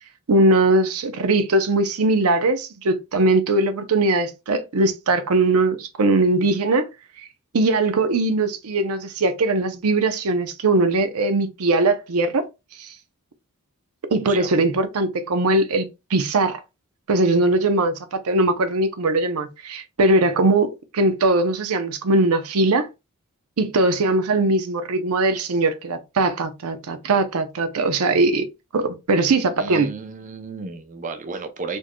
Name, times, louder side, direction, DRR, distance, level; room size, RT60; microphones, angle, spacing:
voice 1, 0.3-6.9 7.5-12.4 12.8-12.9 14.1-16.6 17.1-22.9 23.6-28.5 28.7-29.9, right 2 dB, 80° right, 0.6 m, -20 dB
voice 2, 14.2-14.6 29.6-31.8, right 4 dB, 35° right, 0.5 m, -33 dB
4.3 x 3.0 x 2.2 m
head